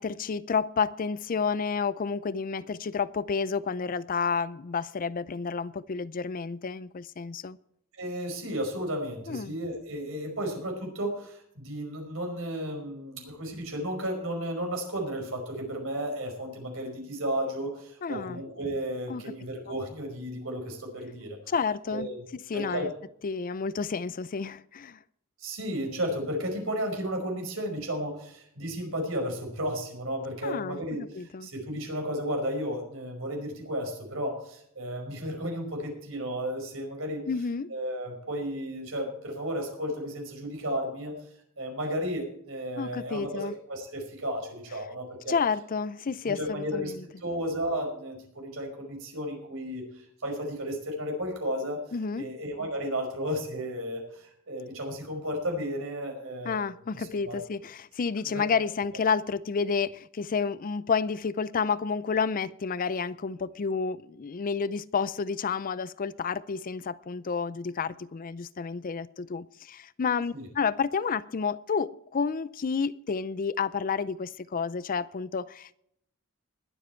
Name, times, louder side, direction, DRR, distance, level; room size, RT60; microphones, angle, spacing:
voice 1, 0.0-7.6 9.3-9.5 18.0-18.4 19.1-19.2 21.5-22.1 22.5-22.9 23.2-25.0 30.4-30.8 31.1-31.5 37.3-37.7 42.8-43.5 45.3-47.0 51.9-52.3 56.4-75.7, left 5 dB, 40° left, 0.4 m, -30 dB
voice 2, 7.9-21.4 21.9-22.2 22.5-22.9 25.4-37.2 37.7-41.1 41.6-45.4 46.2-46.9 47.2-51.8 52.2-56.6 56.9-57.4 58.2-58.4 70.3-70.5, equal, 65° right, 5.2 m, -33 dB
21.0 x 7.6 x 4.4 m
head